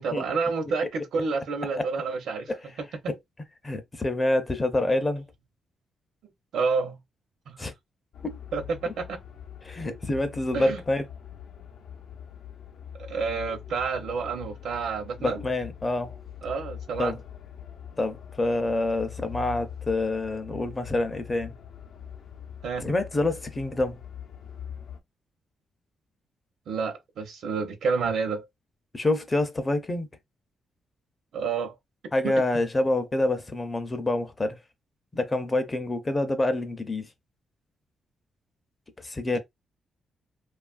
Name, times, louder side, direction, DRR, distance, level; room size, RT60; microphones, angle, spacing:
voice 1, 0.0-2.5 3.0-3.1 6.5-7.0 7.5-7.6 8.5-9.2 10.5-10.8 13.1-15.4 16.4-17.2 22.6-22.9 26.7-28.4 31.3-31.8 32.2-32.4 39.3-39.4, right 5 dB, 75° right, 0.7 m, -29 dB
voice 2, 3.6-5.2 7.6-7.7 8.2-8.4 8.9-9.0 9.6-11.1 15.2-16.2 17.0-17.2 18.0-21.5 22.8-24.0 28.9-30.1 32.1-34.6 35.1-37.1 39.0-39.4, left 2 dB, 20° left, 0.5 m, -27 dB
sound 1, 8.1-25.0, left 9 dB, 70° left, 0.6 m, -43 dB
2.9 x 2.3 x 2.4 m
cardioid pair, 140°, 0 cm